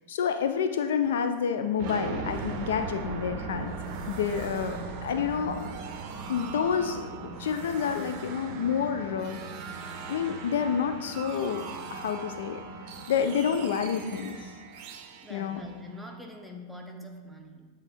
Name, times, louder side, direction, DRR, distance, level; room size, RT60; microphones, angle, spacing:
voice 1, 0.1-3.8 4.1-5.7 6.3-9.4 10.1-11.6 11.9-12.6 13.1-14.5 15.3-15.6, left 7 dB, 60° left, 7 dB, 0.3 m, -29 dB
sound 1, 1.8-16.5, right 4 dB, 45° right, 0.6 m, -39 dB
voice 2, 15.2-17.7, left 1 dB, ahead, 1 dB, 0.8 m, -44 dB
7.8 x 3.6 x 4.3 m, 1.4 s
figure-of-eight pair, 90°, 0 cm